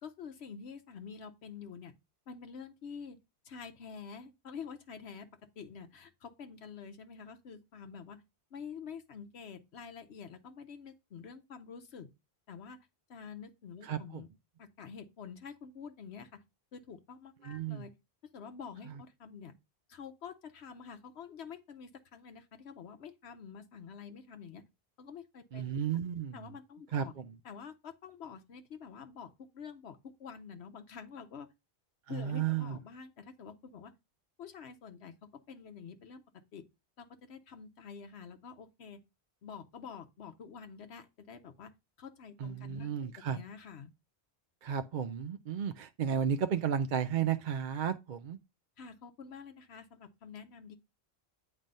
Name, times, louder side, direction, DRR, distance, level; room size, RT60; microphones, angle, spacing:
voice 1, 0.0-1.9 2.3-3.2 3.4-5.3 5.6-8.2 8.5-12.1 12.5-14.3 14.6-16.4 16.7-17.9 18.3-19.5 19.9-24.6 25.0-25.7 25.9-26.0 26.3-27.1 27.4-31.5 32.1-33.9 34.4-36.2 36.5-36.7 37.0-39.0 39.4-41.7 42.0-43.9 48.8-50.8, left 6 dB, 75° left, 1.0 m, -48 dB
voice 2, 13.8-14.2 17.4-17.9 18.9-19.0 25.5-26.5 26.9-27.4 32.1-32.8 42.4-43.4 44.6-48.4, right 8 dB, 55° right, 0.6 m, -33 dB
8.9 x 3.3 x 5.3 m
omnidirectional pair, 1.1 m